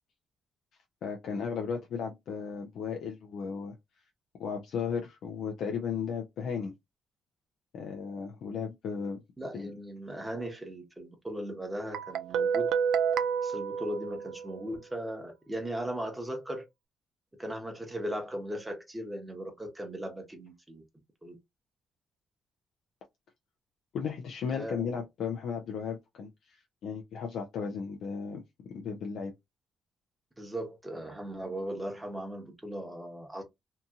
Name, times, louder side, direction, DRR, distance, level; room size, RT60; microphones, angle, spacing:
voice 1, 1.0-3.7 4.4-6.7 7.7-9.2 9.5-9.7 23.9-28.4 28.7-29.3, left 6 dB, 70° left, 0.5 m, -35 dB
voice 2, 9.4-12.7 13.4-16.6 17.4-20.8 21.2-21.4 24.5-24.9 30.4-33.4, right 1 dB, 10° right, 1.0 m, -38 dB
Guitar, 11.9-14.7, right 7 dB, 80° right, 0.3 m, -29 dB
2.8 x 2.6 x 2.3 m
cardioid pair, 90°, 0 cm